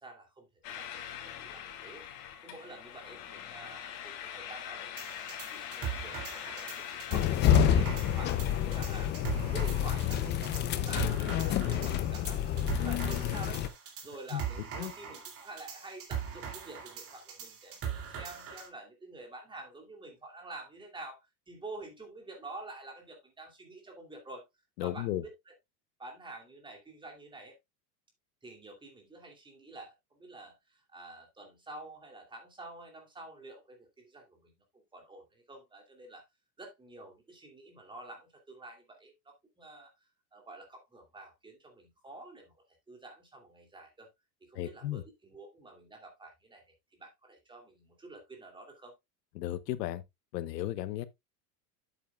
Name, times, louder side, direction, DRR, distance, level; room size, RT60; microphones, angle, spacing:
voice 1, 0.0-2.0 2.4-9.1 9.5-13.6 14.0-24.4 24.8-25.5 26.0-27.5 28.4-34.5 34.9-36.2 36.6-39.9 40.3-42.5 42.9-44.1 44.4-46.6 46.9-48.9, right 2 dB, 10° right, 2.6 m, -48 dB
sound 1, 0.6-9.1, left 10 dB, 60° left, 2.6 m, -43 dB
sound 2, 5.0-18.7, right 8 dB, 30° right, 2.6 m, -41 dB
sound 3, 7.1-13.7, left 10 dB, 25° left, 0.5 m, -28 dB
voice 2, 24.8-25.2 44.5-45.0 49.3-50.0 50.3-51.1, left 14 dB, 90° left, 1.1 m, -34 dB
9.7 x 8.4 x 2.3 m
supercardioid pair, 155°, 47 cm